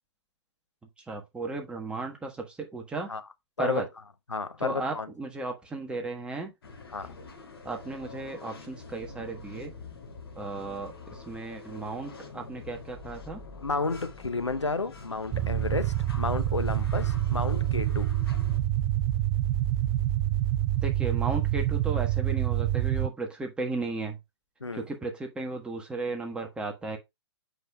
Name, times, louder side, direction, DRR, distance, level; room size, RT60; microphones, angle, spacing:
voice 1, 1.0-3.1 3.6-3.9 4.6-6.5 7.6-9.7 10.4-13.4 20.8-24.2 24.7-27.0, right 3 dB, 5° right, 1.3 m, -35 dB
voice 2, 4.3-5.1 6.9-7.1 13.6-18.1 24.6-24.8, left 3 dB, 85° left, 0.8 m, -32 dB
sound 1, 6.6-18.6, left 4 dB, 60° left, 2.6 m, -45 dB
sound 2, 15.3-23.1, right 13 dB, 20° right, 0.4 m, -27 dB
7.9 x 5.3 x 2.3 m
figure-of-eight pair, 120°, 14 cm